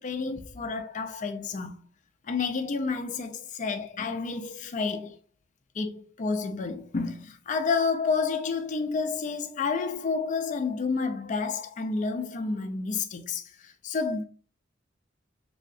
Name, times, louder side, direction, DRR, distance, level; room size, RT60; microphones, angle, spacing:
voice 1, 0.0-1.8 2.3-5.2 5.8-14.2, left 4 dB, 40° left, 0.4 m, -30 dB
3.1 x 2.7 x 2.6 m
head